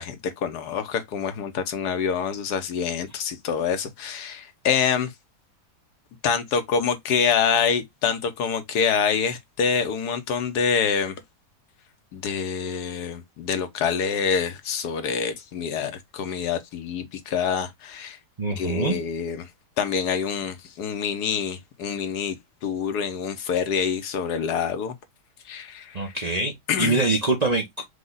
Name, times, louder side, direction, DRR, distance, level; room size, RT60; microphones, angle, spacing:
voice 1, 0.0-5.1 6.2-11.1 12.1-18.2 18.6-19.5 19.8-24.9 25.5-26.1 26.7-27.0, left 6 dB, 70° left, 1.3 m, -26 dB
voice 2, 18.4-19.0 25.9-27.9, right 3 dB, 35° right, 0.7 m, -24 dB
5.0 x 2.3 x 3.8 m
omnidirectional pair, 1.8 m